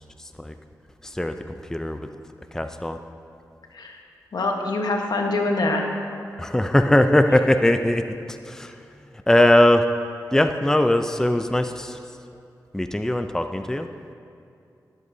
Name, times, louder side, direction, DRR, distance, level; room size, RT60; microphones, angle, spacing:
voice 1, 1.0-1.3 1.7-2.0 2.5-3.0 6.4-8.0 8.5-8.7 9.3-9.8 10.3-12.0 12.7-13.9, left 1 dB, 5° left, 7 dB, 0.5 m, -20 dB
voice 2, 4.3-5.8, left 2 dB, 70° left, 1 dB, 1.3 m, -24 dB
18.0 x 8.1 x 2.8 m, 2.5 s
cardioid pair, 45°, 7 cm